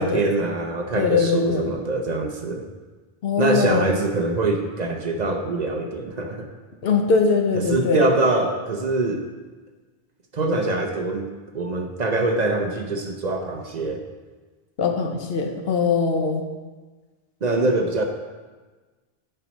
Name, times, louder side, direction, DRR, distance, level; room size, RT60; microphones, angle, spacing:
voice 1, 0.0-2.7 3.4-6.5 7.5-9.2 10.3-11.3 11.5-14.0 17.4-18.0, right 2 dB, 50° right, 4 dB, 0.8 m, -24 dB
voice 2, 0.9-1.6 3.2-3.9 6.8-8.1 14.8-16.4, left 5 dB, 75° left, 4 dB, 1.1 m, -21 dB
9.0 x 5.8 x 4.1 m, 1.3 s
omnidirectional pair, 1.0 m